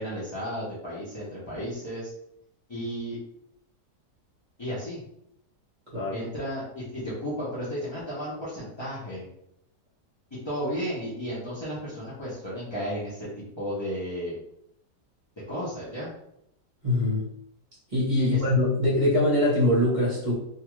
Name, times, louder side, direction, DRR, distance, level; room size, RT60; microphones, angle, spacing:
voice 1, 0.0-2.1 2.7-3.2 4.6-5.0 6.1-9.3 10.4-14.4 15.5-16.1 18.1-18.4, equal, 35° left, -10 dB, 0.4 m, -33 dB
voice 2, 5.9-6.2 16.8-17.3 17.9-20.3, left 1 dB, 35° right, -6 dB, 0.9 m, -23 dB
2.6 x 2.4 x 3.0 m, 0.75 s
omnidirectional pair, 1.7 m